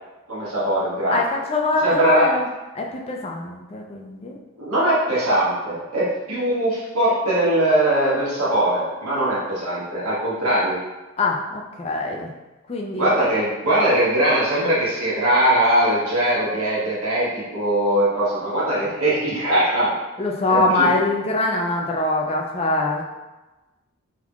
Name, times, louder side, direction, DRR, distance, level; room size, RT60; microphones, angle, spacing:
voice 1, 0.3-1.2 1.8-2.3 4.6-10.8 13.0-19.9 20.5-20.9, right 1 dB, 90° right, -8 dB, 1.3 m, -21 dB
voice 2, 1.1-2.5 2.7-4.4 11.2-12.3 12.7-13.3 20.2-23.0, left 2 dB, 25° left, 0 dB, 0.4 m, -23 dB
3.5 x 2.9 x 2.4 m, 1.1 s
head